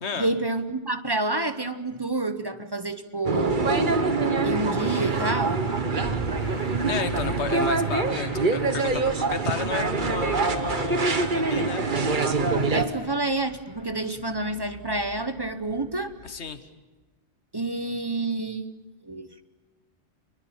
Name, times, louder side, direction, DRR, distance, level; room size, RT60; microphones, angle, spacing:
voice 1, 0.2-3.9 4.4-5.6 12.7-16.1 17.5-18.6 19.0-19.3, right 2 dB, 25° right, 10 dB, 0.9 m, -28 dB
sound 1, 3.2-12.9, right 3 dB, 45° right, 1.5 m, -25 dB
Motor vehicle (road) / Engine starting, 4.8-16.4, right 1 dB, 35° left, 3.7 m, -42 dB
voice 2, 6.8-11.8 16.2-16.6, left 5 dB, 75° left, 11 dB, 1.5 m, -33 dB
27.5 x 21.5 x 7.3 m, 1.2 s
omnidirectional pair, 1.1 m